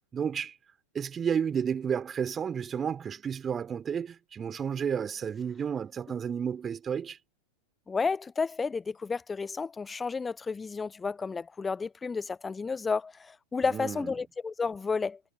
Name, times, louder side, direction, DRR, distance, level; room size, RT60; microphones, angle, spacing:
voice 1, 0.1-0.6 0.9-7.2 13.7-14.1, right 7 dB, 20° right, 3.8 m, -31 dB
voice 2, 7.9-15.2, left 4 dB, 15° left, 0.8 m, -31 dB
figure-of-eight pair, 90°, 0 cm